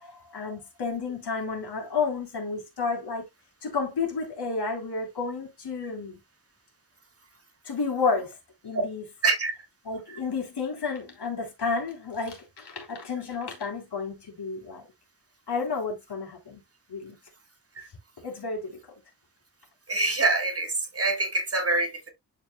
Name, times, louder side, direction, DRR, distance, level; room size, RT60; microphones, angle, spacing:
voice 1, 0.0-3.3 3.6-6.2 7.7-8.3 8.6-9.1 9.9-14.8 15.5-16.6 16.9-17.2 18.2-18.8, left 4 dB, 75° left, 3.4 m, -31 dB
voice 2, 19.9-22.1, right 3 dB, 35° right, 1.7 m, -25 dB
11.5 x 4.4 x 2.2 m
wide cardioid pair, 145°, 40 cm